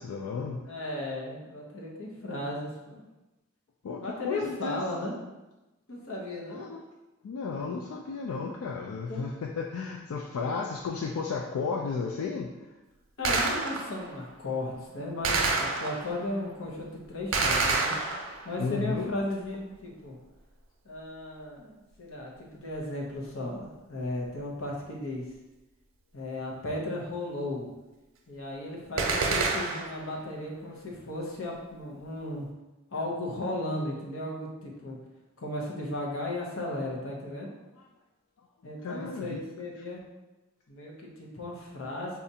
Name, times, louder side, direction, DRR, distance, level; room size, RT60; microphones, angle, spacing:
voice 1, 0.0-0.6 3.8-4.8 6.5-6.8 7.2-12.5 18.6-19.1 38.8-39.4, left 4 dB, 85° left, 1 dB, 0.3 m, -33 dB
voice 2, 0.6-3.0 4.0-5.2 5.9-6.7 9.1-9.2 13.2-18.0 18.4-20.2 20.8-25.2 26.1-27.7 28.3-32.5 32.9-35.0 35.4-37.5 38.6-40.0 40.7-42.2, left 1 dB, 65° left, -2 dB, 0.7 m, -35 dB
Gunshot gunfire, 13.2-14.1 15.2-16.2 17.3-18.6 29.0-30.0, right 3 dB, 70° right, 0.5 m, -28 dB
4.1 x 2.4 x 2.7 m, 1.0 s
head